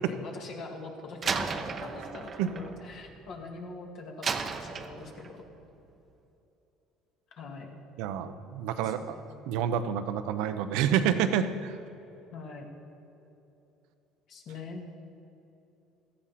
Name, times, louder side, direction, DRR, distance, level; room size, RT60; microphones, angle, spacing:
voice 1, 0.0-5.5 7.3-7.7 8.8-9.3 12.3-12.7 14.3-14.9, left 3 dB, 55° left, 1 dB, 2.2 m, -43 dB
Slam, 1.2-3.6 4.2-5.5, right 5 dB, 30° right, 0.8 m, -35 dB
voice 2, 8.0-9.2 9.5-11.8, right 9 dB, 80° right, 10 dB, 0.8 m, -28 dB
16.5 x 13.5 x 4.3 m, 3.0 s
cardioid pair, 130°, 0 cm